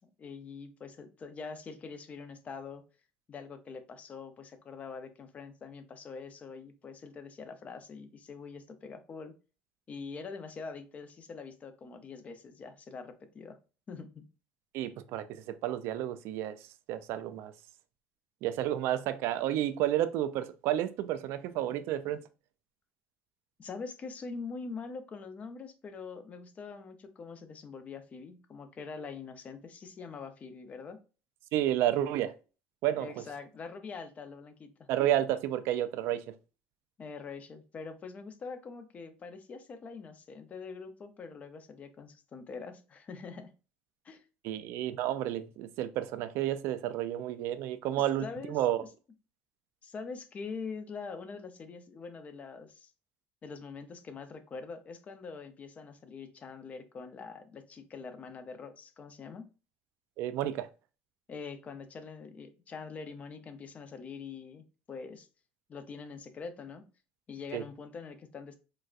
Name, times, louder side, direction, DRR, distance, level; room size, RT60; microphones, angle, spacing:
voice 1, 0.0-2.8 3.3-9.4 9.9-13.6 13.9-14.2 23.6-31.0 33.0-34.9 37.0-43.5 44.0-44.2 48.0-48.9 49.8-52.9 53.4-59.5 61.3-65.3 65.7-66.9 67.3-68.5, left 5 dB, 30° left, 0.5 m, -44 dB
voice 2, 14.7-16.6 16.9-17.5 18.4-22.2 31.5-32.3 32.8-33.1 34.9-36.2 44.4-48.8 60.2-60.7 67.5-67.6, right 12 dB, 70° right, 0.3 m, -31 dB
4.0 x 2.2 x 2.4 m
cardioid pair, 115°, 4 cm